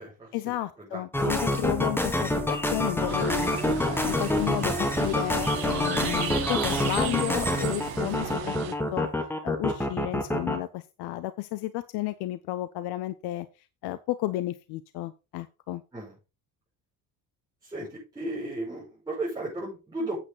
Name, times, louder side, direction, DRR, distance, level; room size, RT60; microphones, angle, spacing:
voice 1, 0.3-3.5 3.8-9.1 9.4-13.5 13.8-15.8, left 15 dB, 90° left, 0.7 m, -32 dB
sound 1, 1.1-10.6, left 1 dB, 5° left, 1.5 m, -27 dB
sound 2, 3.1-8.8, right 11 dB, 75° right, 1.6 m, -35 dB
voice 2, 17.6-20.2, right 2 dB, 10° right, 5.7 m, -34 dB
8.7 x 8.0 x 4.1 m
cardioid pair, 150°, 38 cm